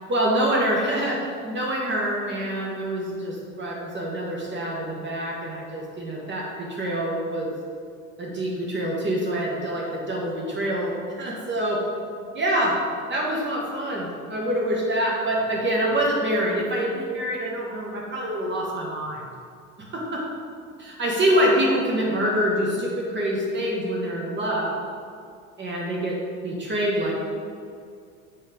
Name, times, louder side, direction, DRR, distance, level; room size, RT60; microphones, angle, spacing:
voice 1, 0.1-7.5 8.2-10.9 11.2-11.8 12.3-12.8 13.1-19.2 19.8-20.2 20.8-24.8 25.6-26.2 26.4-27.1, right 1 dB, 25° right, -3 dB, 1.4 m, -25 dB
7.8 x 4.3 x 5.0 m, 2.3 s
figure-of-eight pair, 65°, 41 cm